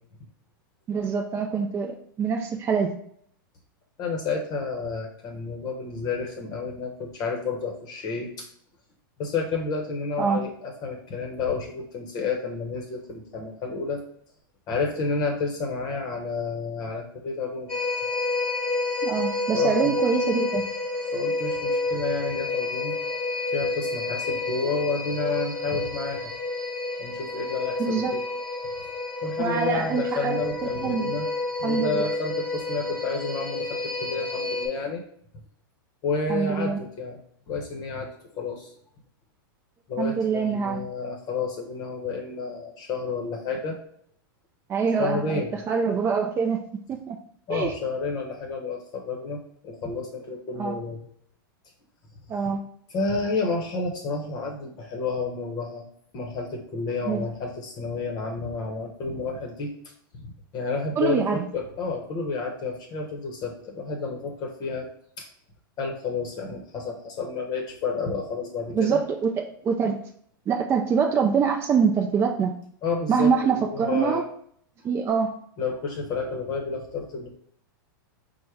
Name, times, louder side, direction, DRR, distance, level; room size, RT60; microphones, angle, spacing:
voice 1, 0.9-3.0 10.2-10.4 19.0-20.6 27.8-28.1 29.4-30.4 30.8-31.1 31.6-32.1 36.3-36.8 40.0-40.8 44.7-46.6 46.9-47.2 47.5-47.7 50.6-50.8 52.3-52.6 57.1-57.3 61.0-61.5 68.7-70.1 70.5-72.5 73.1-74.2 74.8-75.4, right 6 dB, 20° right, 2 dB, 0.3 m, -25 dB
voice 2, 4.0-8.5 9.2-14.0 14.7-17.7 19.5-20.0 21.1-23.0 23.5-26.3 27.0-28.2 29.2-31.3 31.6-35.0 36.0-37.2 37.5-38.7 39.9-43.8 45.0-45.6 47.5-51.0 52.9-55.8 56.1-59.7 60.1-64.8 65.2-65.3 65.8-69.0 72.8-74.2 75.6-77.3, left 4 dB, 35° left, 1 dB, 0.8 m, -30 dB
sound 1, 17.7-34.7, left 2 dB, 10° left, 1.2 m, -29 dB
4.5 x 2.1 x 4.6 m, 0.65 s
hypercardioid pair, 125°, 12 cm